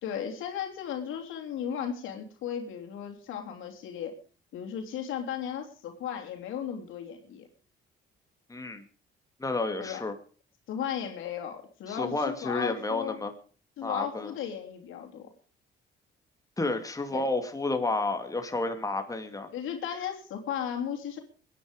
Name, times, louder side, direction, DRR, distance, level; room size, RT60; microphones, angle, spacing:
voice 1, 0.0-4.2 4.5-7.5 9.8-10.0 10.7-13.2 13.8-15.3 17.1-17.3 19.5-21.2, left 8 dB, 85° left, 3 dB, 3.1 m, -35 dB
voice 2, 8.5-8.8 9.4-10.1 11.9-13.3 13.8-14.3 16.6-19.5, left 2 dB, 15° left, 6 dB, 2.5 m, -31 dB
22.0 x 10.0 x 5.2 m, 0.39 s
cardioid pair, 90°, 20 cm